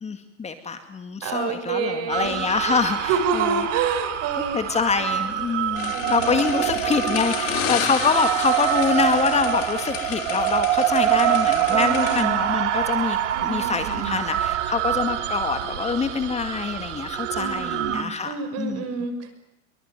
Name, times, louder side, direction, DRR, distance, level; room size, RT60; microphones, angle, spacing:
voice 1, 0.0-3.7 4.5-18.8, left 5 dB, 20° left, 8 dB, 2.2 m, -25 dB
voice 2, 1.2-2.4 2.7-2.8 3.1-5.1 5.9-6.7 11.7-12.3 13.3-14.2 17.3-19.3, right 6 dB, 45° right, 9 dB, 5.7 m, -28 dB
sound 1, 2.1-18.0, right 12 dB, 80° right, 2.5 m, -25 dB
sound 2, 5.8-12.2, left 11 dB, 40° left, 2.9 m, -31 dB
24.5 x 23.5 x 9.3 m, 0.86 s
supercardioid pair, 125°, 36 cm